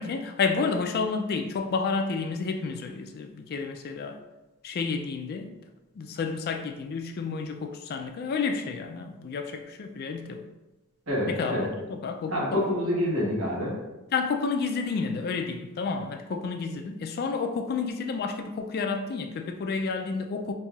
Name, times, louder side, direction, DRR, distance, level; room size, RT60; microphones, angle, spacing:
voice 1, 0.0-4.2 4.6-5.5 6.0-10.5 11.3-12.6 14.1-20.5, left 4 dB, 45° left, 5 dB, 0.3 m, -30 dB
voice 2, 11.1-11.7 12.3-13.7, left 1 dB, 85° right, -7 dB, 1.4 m, -27 dB
5.4 x 2.6 x 2.3 m, 1.0 s
head